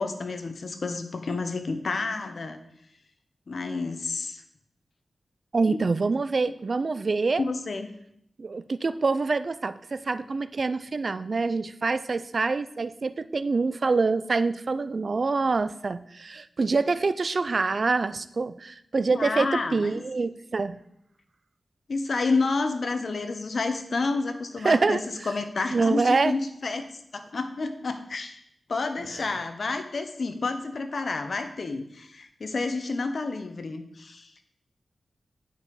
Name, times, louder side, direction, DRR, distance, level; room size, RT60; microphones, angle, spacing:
voice 1, 0.0-2.6 3.5-4.4 5.7-5.8 7.4-7.9 19.1-20.0 21.9-26.8 27.1-28.4 28.7-34.3, left 3 dB, 65° left, 8 dB, 0.9 m, -30 dB
voice 2, 5.5-7.4 8.4-20.8 24.6-25.0 25.7-26.3, right 4 dB, 55° right, 13 dB, 0.4 m, -25 dB
9.4 x 5.4 x 4.9 m, 0.74 s
cardioid pair, 65°, 0 cm